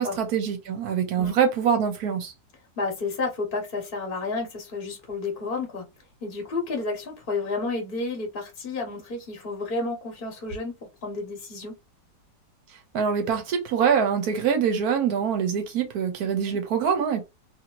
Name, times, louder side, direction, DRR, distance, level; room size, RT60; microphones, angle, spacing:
voice 1, 0.0-2.3 12.9-17.2, right 7 dB, 70° right, 1.0 m, -24 dB
voice 2, 2.8-5.9 6.2-10.7 11.0-11.7, left 3 dB, 40° left, 0.9 m, -31 dB
2.7 x 2.6 x 2.9 m
omnidirectional pair, 1.9 m